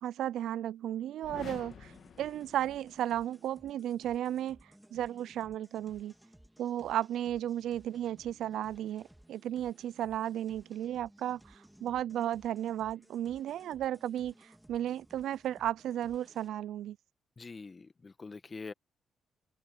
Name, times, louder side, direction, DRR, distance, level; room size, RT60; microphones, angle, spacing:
voice 1, 0.0-1.9 2.2-4.6 4.9-6.1 6.6-17.0, right 11 dB, 75° right, 0.3 m, -34 dB
sound 1, 1.2-3.2, left 8 dB, 60° left, 2.1 m, -49 dB
sound 2, 1.7-16.5, right 1 dB, 5° right, 1.9 m, -60 dB
voice 2, 17.4-18.7, left 4 dB, 30° left, 1.5 m, -44 dB
open air
cardioid pair, 90°, 0 cm